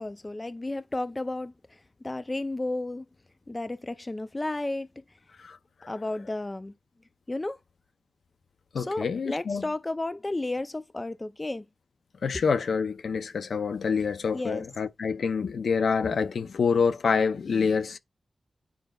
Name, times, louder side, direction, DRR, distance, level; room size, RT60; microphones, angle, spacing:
voice 1, 0.0-3.1 3.5-4.9 5.9-6.7 7.3-7.6 8.8-11.6 14.3-14.7, left 2 dB, 30° left, 0.4 m, -33 dB
voice 2, 8.7-9.6 12.2-18.0, left 5 dB, 85° left, 0.5 m, -26 dB
9.2 x 5.1 x 2.3 m
cardioid pair, 60°, 0 cm